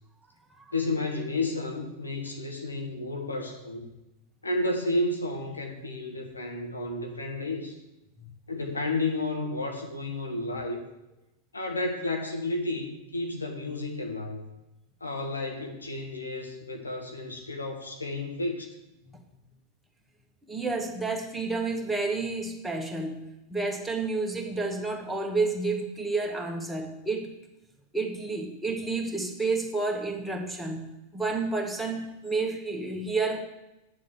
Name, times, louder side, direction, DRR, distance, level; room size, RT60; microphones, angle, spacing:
voice 1, 0.7-3.9 4.4-7.8 8.5-10.8 11.5-14.4 15.0-18.7, left 2 dB, 80° left, 2 dB, 1.8 m, -31 dB
voice 2, 20.5-23.2 23.5-27.3 27.9-33.4, right 3 dB, 5° right, 0 dB, 1.9 m, -30 dB
9.4 x 7.3 x 7.5 m, 0.95 s
figure-of-eight pair, 90°, 0 cm